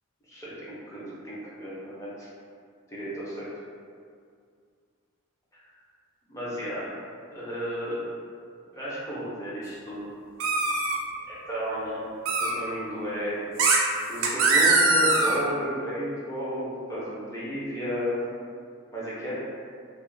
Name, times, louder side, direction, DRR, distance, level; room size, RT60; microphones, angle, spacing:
voice 1, 0.3-2.3 2.9-3.5 5.5-5.6 6.3-6.9 7.3-8.0 8.7-10.1 11.3-12.0 12.4-13.4 14.1-18.2 18.9-19.3, equal, 15° left, -9 dB, 0.5 m, -33 dB
sound 1, 10.4-11.0 12.2-12.5 13.6-13.8 14.2-15.4, right 3 dB, 75° right, 0.4 m, -21 dB
2.4 x 2.0 x 3.0 m, 2.2 s
head